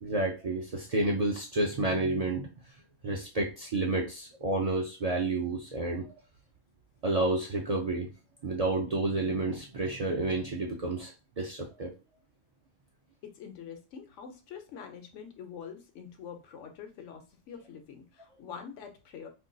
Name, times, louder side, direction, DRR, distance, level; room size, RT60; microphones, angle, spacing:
voice 1, 0.0-2.5 3.0-6.1 7.0-8.1 8.4-11.9, right 2 dB, 55° right, -1 dB, 0.4 m, -30 dB
voice 2, 13.2-19.3, left 7 dB, 90° left, 5 dB, 1.0 m, -45 dB
2.6 x 2.2 x 3.7 m, 0.30 s
omnidirectional pair, 1.2 m